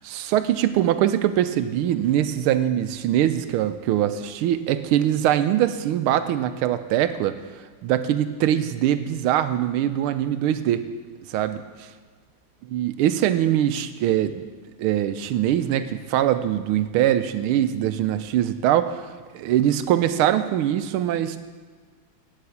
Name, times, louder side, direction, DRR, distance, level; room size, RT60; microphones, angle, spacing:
voice 1, 0.0-7.3 7.8-10.8 11.3-11.6 12.7-14.4 14.8-21.4, right 11 dB, 80° right, 11 dB, 1.4 m, -22 dB
8.8 x 8.1 x 7.1 m, 1.5 s
omnidirectional pair, 2.4 m